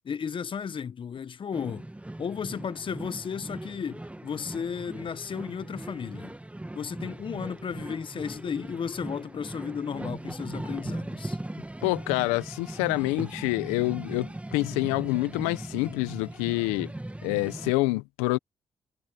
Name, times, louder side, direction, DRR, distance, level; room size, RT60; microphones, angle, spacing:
voice 1, 0.0-1.9 2.2-6.3 6.7-11.4, left 7 dB, 55° left, 1.4 m, -34 dB
sound 1, 1.5-17.7, right 1 dB, 10° right, 1.6 m, -39 dB
voice 2, 11.8-16.9 17.2-18.4, left 22 dB, 85° left, 1.2 m, -27 dB
hypercardioid pair, 45°, 11 cm